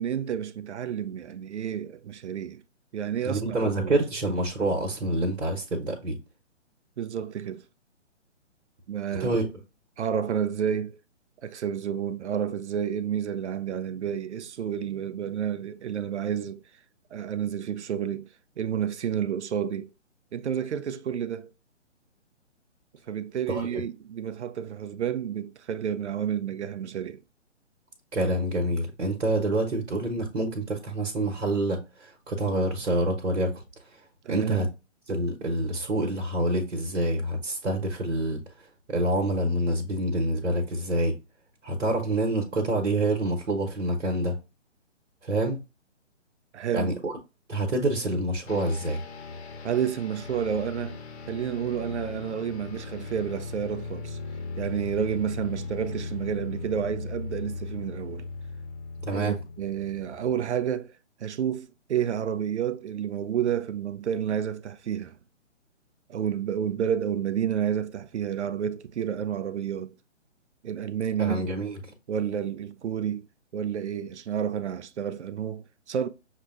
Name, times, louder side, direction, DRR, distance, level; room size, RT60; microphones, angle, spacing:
voice 1, 0.0-2.6 2.9-3.9 7.0-7.6 8.9-9.4 10.0-11.0 11.4-16.6 17.1-18.3 18.6-19.9 20.3-21.5 23.1-27.2 34.2-34.7 46.5-46.9 49.6-51.0 51.3-54.2 54.6-58.3 59.1-65.2 66.1-69.9 70.6-71.4 72.1-73.3 73.5-76.1, right 8 dB, 70° right, 0.5 m, -30 dB
voice 2, 3.2-6.2 9.2-9.5 23.5-23.8 28.1-34.0 34.3-34.7 35.1-41.1 41.6-44.4 45.2-45.6 46.7-47.1 47.5-49.0 59.0-59.4 71.2-71.9, right 1 dB, 85° right, 1.1 m, -27 dB
sound 1, 48.5-60.7, left 3 dB, 60° left, 0.9 m, -38 dB
6.5 x 2.2 x 2.4 m
hypercardioid pair, 140°, 36 cm